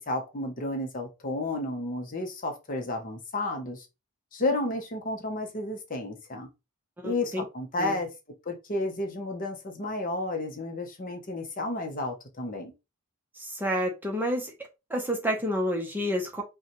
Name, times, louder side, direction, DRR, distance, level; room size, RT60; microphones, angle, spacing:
voice 1, 0.0-3.9 4.3-6.5 7.0-8.1 8.5-12.7, left 2 dB, 40° left, 0.7 m, -32 dB
voice 2, 7.0-7.4 7.8-8.0 13.3-14.5 14.9-16.4, equal, 10° right, 0.7 m, -29 dB
5.3 x 2.3 x 2.9 m
head